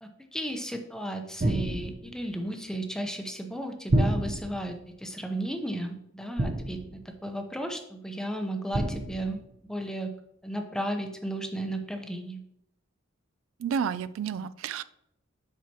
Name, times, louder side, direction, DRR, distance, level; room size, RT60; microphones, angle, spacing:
voice 1, 0.0-10.1 10.4-12.4, right 1 dB, 5° left, 5 dB, 0.7 m, -34 dB
sound 1, 1.4-2.2 3.9-4.7 6.4-7.1 8.7-9.4, right 1 dB, 45° right, 0.7 m, -28 dB
voice 2, 13.6-14.8, right 7 dB, 80° right, 16 dB, 0.3 m, -30 dB
7.5 x 5.7 x 2.9 m, 0.77 s
head